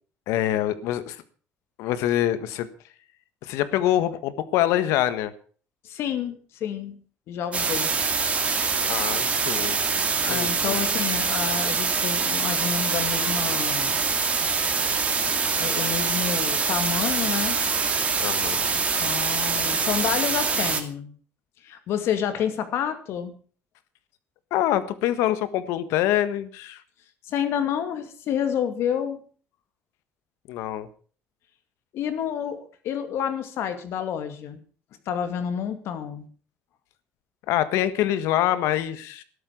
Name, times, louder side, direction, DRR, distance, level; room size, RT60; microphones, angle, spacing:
voice 1, 0.3-1.2 1.8-2.7 3.4-5.3 8.8-9.8 10.3-10.7 18.2-18.6 24.5-26.8 30.5-30.9 37.5-39.2, left 12 dB, 85° left, 13 dB, 1.5 m, -25 dB
voice 2, 5.8-7.0 7.3-7.9 10.2-14.0 15.6-17.6 18.7-21.1 21.6-23.3 27.2-29.2 31.9-34.6 35.1-36.3, left 8 dB, 65° left, 9 dB, 2.4 m, -29 dB
sound 1, 7.5-20.8, right 5 dB, 30° right, 2.3 m, -24 dB
13.5 x 12.0 x 5.9 m, 0.41 s
cardioid pair, 130°, 5 cm